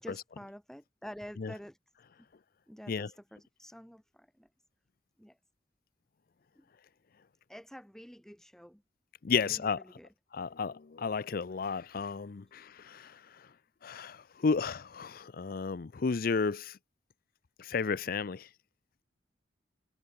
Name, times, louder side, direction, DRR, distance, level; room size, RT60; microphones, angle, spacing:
voice 1, 0.0-1.8 2.7-4.5 5.2-5.4 6.6-6.7 7.5-8.8 9.4-10.1, equal, 5° left, 2.0 m, -48 dB
voice 2, 9.2-9.8 10.3-13.2 13.8-16.8 17.6-18.5, left 5 dB, 55° left, 0.5 m, -32 dB
head